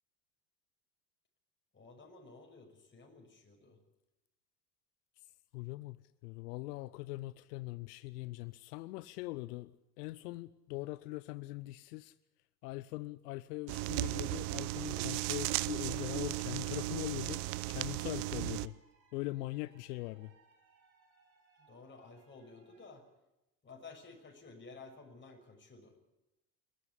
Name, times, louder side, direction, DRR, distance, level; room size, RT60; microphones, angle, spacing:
voice 1, 1.7-3.8 21.6-23.0 23.6-26.0, left 4 dB, 20° left, 6.2 m, -54 dB
voice 2, 5.5-6.0 6.2-9.7 10.0-12.1 12.6-17.4 17.7-18.7 19.1-20.3, left 20 dB, 65° left, 0.8 m, -41 dB
sound 1, 13.7-18.7, right 20 dB, 55° right, 0.9 m, -36 dB
sound 2, 14.3-22.9, right 5 dB, 80° right, 5.2 m, -67 dB
22.0 x 16.5 x 9.9 m
hypercardioid pair, 75°, 50 cm